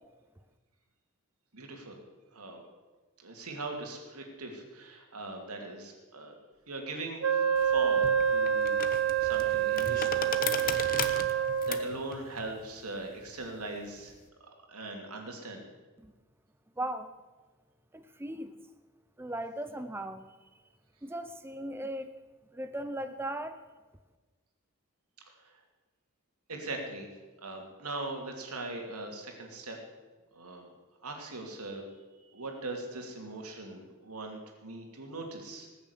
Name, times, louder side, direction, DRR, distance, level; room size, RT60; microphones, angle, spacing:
voice 1, 1.5-2.0 2.3-2.6 3.2-6.3 6.7-8.8 9.2-10.3 10.6-11.0 11.3-14.1 14.4-15.7 25.3-25.6 26.5-27.1 27.4-29.8 30.3-30.7 31.0-31.9 32.3-35.7, right 2 dB, 85° right, 2 dB, 2.9 m, -41 dB
Wind instrument woodwind instrument, 7.2-12.0, right 8 dB, 70° right, 1.0 m, -27 dB
sound 1, 7.6-14.2, left 6 dB, 40° left, 0.9 m, -38 dB
voice 2, 16.8-17.1 17.9-18.5 19.2-20.3 21.0-22.1 22.5-23.6, right 1 dB, 10° right, 9 dB, 0.5 m, -37 dB
19.5 x 7.0 x 8.4 m, 1.3 s
head